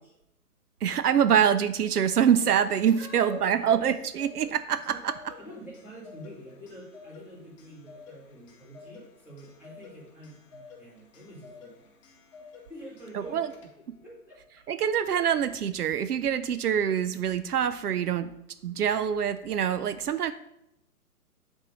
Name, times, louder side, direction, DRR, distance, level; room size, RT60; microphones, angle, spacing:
voice 1, 0.8-5.1 13.1-13.5 13.9-14.0 14.7-18.3 18.6-20.3, right 8 dB, 80° right, 12 dB, 0.5 m, -25 dB
Clock, 2.5-14.0, left 5 dB, 20° left, 0.8 m, -52 dB
voice 2, 3.0-3.7 4.9-5.0 5.4-12.0 12.7-13.7 14.0-14.6, equal, 5° right, -7 dB, 1.5 m, -46 dB
7.3 x 3.6 x 5.2 m, 0.82 s
figure-of-eight pair, 140°, 45 cm